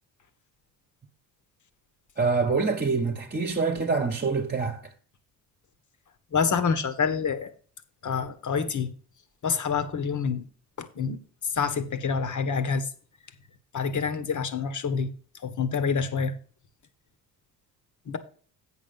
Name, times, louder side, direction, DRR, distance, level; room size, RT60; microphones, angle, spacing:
voice 1, 2.2-4.8, right 4 dB, 25° right, 1.3 m, -25 dB
voice 2, 6.3-7.5 8.0-8.9 9.4-10.4 10.8-11.2 11.5-12.9 13.7-15.1 15.4-16.3 18.1-18.2, left 5 dB, 40° left, 1.5 m, -27 dB
8.4 x 6.3 x 5.5 m
supercardioid pair, 65°, 44 cm